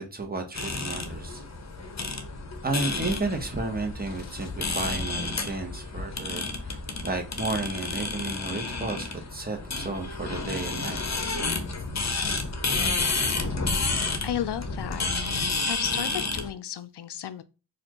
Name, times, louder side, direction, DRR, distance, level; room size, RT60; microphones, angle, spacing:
voice 1, 0.0-1.4 2.6-11.0, right 2 dB, 20° right, 0.9 m, -32 dB
sound 1, 0.5-16.5, left 3 dB, 40° left, 0.8 m, -30 dB
voice 2, 14.2-15.1 15.4-17.4, left 10 dB, 75° left, 0.5 m, -33 dB
4.2 x 2.5 x 2.9 m
wide cardioid pair, 50°, 41 cm